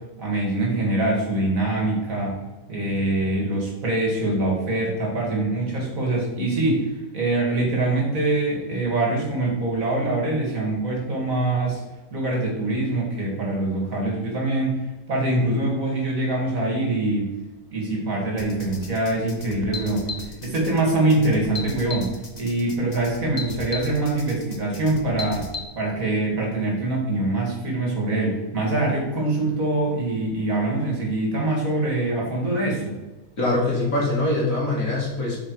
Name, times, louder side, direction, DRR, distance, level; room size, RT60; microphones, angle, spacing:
voice 1, 0.2-2.4 2.7-6.9 7.1-11.8 12.1-14.8 15.1-17.3 17.7-25.5 25.7-33.0, right 2 dB, 55° right, -1 dB, 2.7 m, -24 dB
sound 1, 18.4-25.6, left 4 dB, 30° left, 0.9 m, -36 dB
voice 2, 33.4-35.4, left 2 dB, 55° left, -3 dB, 2.9 m, -23 dB
9.1 x 5.9 x 4.8 m, 1.1 s
omnidirectional pair, 1.7 m